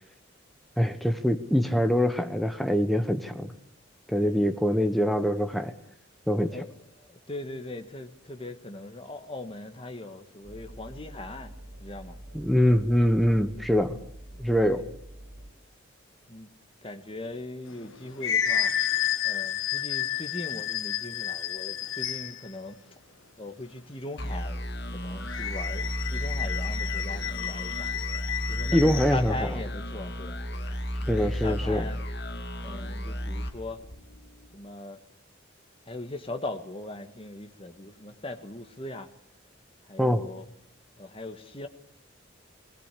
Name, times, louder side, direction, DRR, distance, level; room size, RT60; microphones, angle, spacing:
voice 1, 0.8-3.5 4.1-5.7 6.3-6.6 12.3-14.0 14.4-14.8 28.7-29.3 31.1-31.9 40.0-40.2, equal, ahead, 1.3 m, -24 dB
voice 2, 4.2-4.7 6.5-6.7 7.0-12.2 14.3-14.8 16.3-16.5 16.8-22.9 23.4-27.9 28.4-30.4 31.1-32.0 32.6-33.8 34.5-35.0 35.9-39.1 39.8-40.4 41.0-41.7, left 2 dB, 25° left, 1.7 m, -40 dB
sound 1, 10.4-15.5, right 1 dB, 80° right, 4.7 m, -46 dB
sound 2, 17.7-22.5 25.2-29.2, left 10 dB, 75° left, 1.4 m, -30 dB
sound 3, 24.2-34.5, equal, 55° left, 2.3 m, -33 dB
20.0 x 18.5 x 8.5 m
head